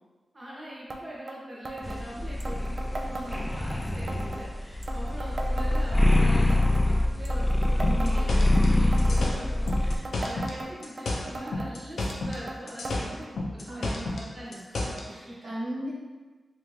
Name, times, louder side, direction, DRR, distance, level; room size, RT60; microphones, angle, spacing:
voice 1, 0.3-15.5, right 1 dB, 30° right, -7 dB, 0.9 m, -42 dB
sound 1, 0.9-1.0 1.3-1.4 1.6-2.0 2.4-3.8 4.1-4.4 4.8-6.2 6.5-6.9 7.2-8.6 8.9-9.3 9.7-11.0 11.3-11.7 12.1-12.6 12.8-13.0 13.2-13.3 14.1-14.2 15.0-15.1, right 2 dB, 60° right, 0.3 m, -37 dB
sound 2, 1.8-10.0, left 1 dB, 20° left, 0.3 m, -24 dB
sound 3, 7.8-10.6 10.8-12.4 12.7-15.0, left 2 dB, 80° left, 0.5 m, -31 dB
voice 2, 7.8-8.2 13.7-14.1 15.1-15.9, right 1 dB, 80° right, -9 dB, 1.3 m, -36 dB
3.3 x 2.5 x 3.0 m, 1.3 s
cardioid pair, 60°, 0 cm